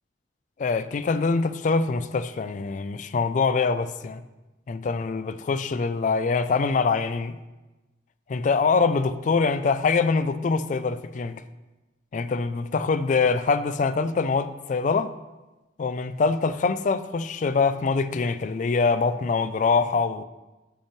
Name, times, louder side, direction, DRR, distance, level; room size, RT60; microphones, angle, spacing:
voice 1, 0.6-4.2 4.7-7.4 8.3-11.4 12.1-15.1 15.8-20.2, left 4 dB, 45° left, 0.3 m, -24 dB
10.0 x 5.6 x 3.1 m
head